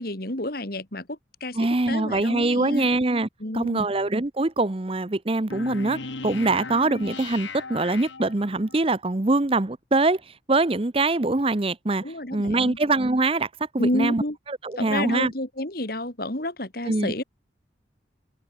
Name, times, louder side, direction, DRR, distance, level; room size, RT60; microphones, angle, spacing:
voice 1, 0.0-2.9 3.4-3.9 12.0-12.8 13.8-14.4 14.8-17.2, left 1 dB, 50° left, 3.1 m, -30 dB
voice 2, 1.6-3.3 3.5-12.0 12.3-13.5 13.7-14.2 14.5-15.3 16.9-17.1, right 2 dB, 30° right, 0.8 m, -23 dB
sound 1, 5.5-8.8, left 3 dB, 75° left, 2.0 m, -37 dB
open air
head